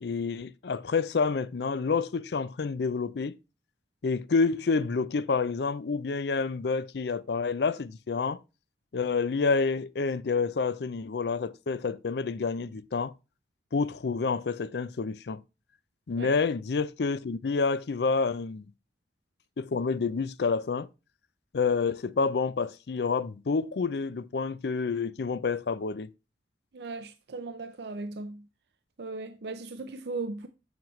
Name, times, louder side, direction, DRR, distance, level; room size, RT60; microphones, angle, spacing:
voice 1, 0.0-3.3 4.0-8.4 8.9-13.1 13.7-15.4 16.1-18.7 19.6-20.9 21.5-26.1, left 4 dB, 70° left, 0.5 m, -28 dB
voice 2, 26.7-28.4 29.0-30.5, right 3 dB, 70° right, 0.6 m, -37 dB
7.6 x 7.2 x 3.1 m
head